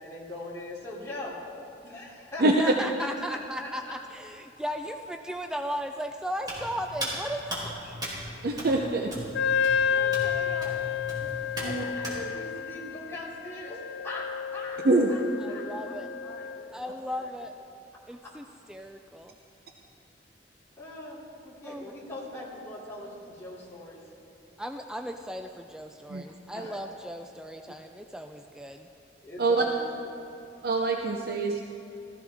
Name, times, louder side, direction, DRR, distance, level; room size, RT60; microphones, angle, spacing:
voice 1, 0.0-1.4 1.8-4.0 9.8-10.9 11.1-11.3 11.6-14.3 14.5-14.8 15.1-15.2 15.5-16.0 16.2-17.3 18.2-18.3 20.8-24.0 26.2-26.8 29.2-30.1, left 1 dB, 15° left, -7 dB, 3.0 m, -41 dB
voice 2, 2.4-8.0 9.7-10.0 15.4-16.1 16.7-17.5 18.1-19.4 21.6-21.9 24.6-28.9, equal, 5° right, 5 dB, 0.3 m, -36 dB
Hands, 6.4-12.2, equal, 25° right, 2.7 m, -38 dB
voice 3, 8.4-9.1 11.6-11.8 14.8-15.1 26.1-26.2 29.4-29.6 30.6-31.6, right 2 dB, 60° right, 2 dB, 0.7 m, -24 dB
Wind instrument woodwind instrument, 9.3-16.7, left 7 dB, 75° left, 0.4 m, -30 dB
15.5 x 14.5 x 3.5 m, 2.9 s
head